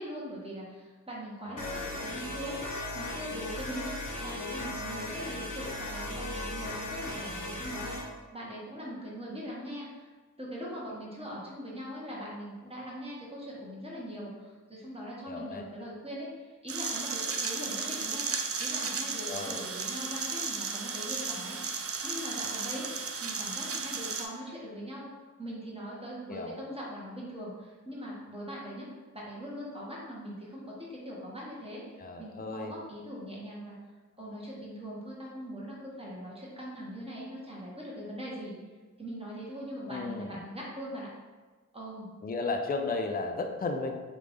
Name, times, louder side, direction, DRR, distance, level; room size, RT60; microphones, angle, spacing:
voice 1, 0.0-8.0 8.3-10.1 10.4-18.2 18.6-25.1 25.4-28.9 29.1-31.8 32.2-33.8 34.2-38.5 39.0-41.1 41.7-42.1, equal, 20° right, -6 dB, 1.1 m, -41 dB
voice 2, 1.5-2.0 15.2-15.6 19.3-19.6 26.3-26.6 32.0-32.7 39.9-40.4 42.2-43.9, left 3 dB, 30° left, 4 dB, 0.4 m, -34 dB
sound 1, 1.6-8.1, left 1 dB, 80° left, 1.1 m, -37 dB
sound 2, 16.7-24.3, right 5 dB, 50° right, 0.5 m, -34 dB
3.2 x 2.5 x 3.5 m, 1.3 s
cardioid pair, 40°, 31 cm